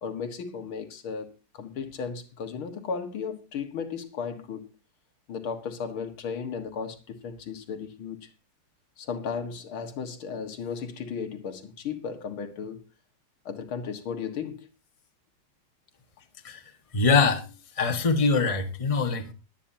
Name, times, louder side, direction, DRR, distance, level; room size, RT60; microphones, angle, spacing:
voice 1, 0.0-4.7 5.3-8.3 9.0-12.8 13.5-14.7, left 6 dB, 75° left, 2.5 m, -35 dB
voice 2, 16.9-17.5 17.8-19.3, left 4 dB, 20° left, 1.3 m, -23 dB
22.0 x 9.4 x 2.8 m
omnidirectional pair, 2.3 m